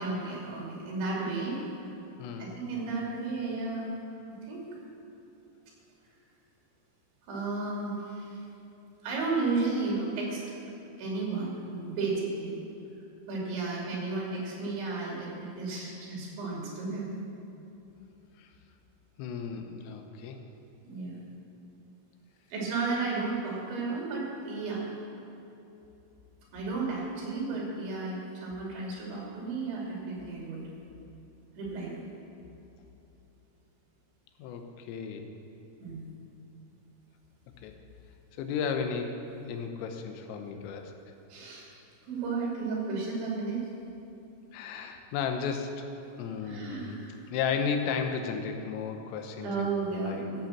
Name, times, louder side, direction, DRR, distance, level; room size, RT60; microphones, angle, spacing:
voice 1, 0.0-1.7 2.4-3.9 4.4-4.7 7.2-8.4 9.0-10.4 11.0-12.6 13.3-17.1 20.9-21.2 22.5-24.8 26.5-30.7 31.6-32.0 35.8-36.0 41.3-41.6 42.1-43.7 46.4-47.1 49.4-50.5, right 3 dB, 65° right, -3 dB, 5.1 m, -33 dB
voice 2, 2.2-2.6 18.4-18.5 19.2-20.4 34.4-35.3 37.6-37.8 38.4-39.2 39.5-40.9 44.5-45.9 46.2-47.0 47.2-50.3, left 6 dB, 85° left, 5 dB, 3.6 m, -34 dB
14.5 x 8.7 x 7.3 m, 2.9 s
omnidirectional pair, 5.8 m